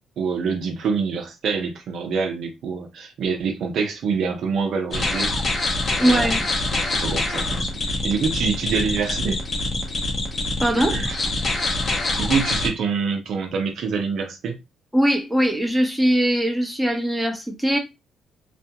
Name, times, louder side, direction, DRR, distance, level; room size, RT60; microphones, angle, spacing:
voice 1, 0.2-5.3 6.0-6.3 6.7-9.4 10.7-11.2 12.2-14.6, right 5 dB, 70° right, 0.6 m, -26 dB
sound 1, 4.9-12.7, left 2 dB, 45° left, 0.8 m, -25 dB
voice 2, 6.0-6.4 10.6-11.0 14.9-17.8, right 1 dB, ahead, 0.8 m, -20 dB
2.4 x 2.2 x 2.8 m
cardioid pair, 90°, 0 cm